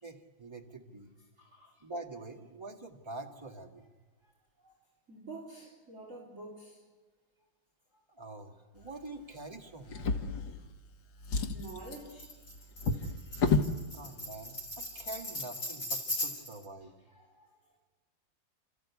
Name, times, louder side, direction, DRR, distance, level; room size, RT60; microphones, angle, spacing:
voice 1, 0.0-1.2 1.8-3.9 8.1-10.1 13.9-16.9, right 2 dB, 15° right, 1.8 m, -45 dB
voice 2, 1.4-1.8 4.2-4.3 4.6-4.7 5.1-6.8 8.8-8.9 9.9-10.2 11.5-12.3 13.2-13.5 17.1-17.5, right 2 dB, 40° right, 4.0 m, -49 dB
Drawer open or close, 9.9-10.9 11.2-13.8 14.7-14.8 15.2-15.3, left 4 dB, 70° left, 2.0 m, -32 dB
Tambourine, 11.6-16.6, left 1 dB, 50° left, 4.7 m, -39 dB
29.5 x 14.0 x 8.4 m
omnidirectional pair, 2.1 m